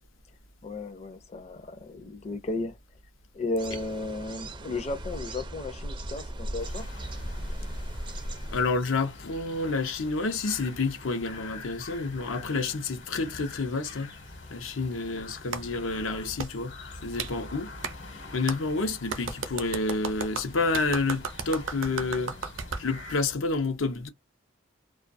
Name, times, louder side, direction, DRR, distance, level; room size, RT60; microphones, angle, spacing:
voice 1, 0.6-2.8 3.3-6.9, left 2 dB, 35° left, 0.5 m, -34 dB
sound 1, 3.6-8.6, right 1 dB, 25° right, 0.4 m, -37 dB
sound 2, 6.6-23.2, left 2 dB, 65° left, 1.1 m, -45 dB
voice 2, 8.5-14.1 14.5-16.8 17.0-17.7 18.3-22.4 22.8-24.1, left 3 dB, 90° left, 0.7 m, -29 dB
Clapping, 15.5-15.6 16.4-16.5 17.2-17.3 17.8-17.9 18.5-18.6 19.1-22.8, right 5 dB, 70° right, 0.6 m, -34 dB
2.3 x 2.3 x 2.5 m
head